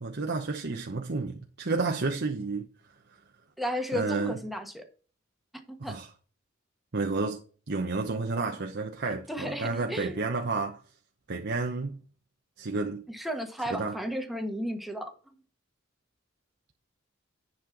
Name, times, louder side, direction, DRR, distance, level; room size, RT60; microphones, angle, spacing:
voice 1, 0.0-2.7 3.9-4.4 5.8-6.1 6.9-7.4 7.7-10.8 11.3-12.0 12.6-13.0 13.7-14.0, right 3 dB, 60° right, 0.9 m, -31 dB
voice 2, 3.6-4.8 5.7-6.0 9.3-10.3 13.1-15.1, equal, ahead, 1.4 m, -34 dB
10.5 x 4.3 x 5.9 m
head